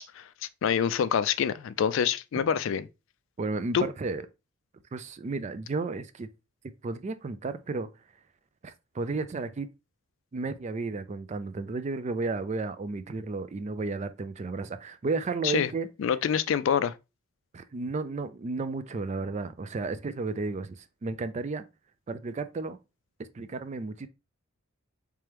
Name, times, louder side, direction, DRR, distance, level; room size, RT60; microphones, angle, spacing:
voice 1, 0.6-2.8 3.7-3.8 15.4-15.7 16.0-16.9, left 8 dB, 60° left, 0.3 m, -26 dB
voice 2, 3.4-4.3 4.9-6.3 6.8-7.9 8.6-9.7 10.3-15.9 17.5-21.6 22.1-22.8 23.3-24.1, right 3 dB, 30° right, 0.3 m, -33 dB
3.4 x 3.1 x 3.3 m
head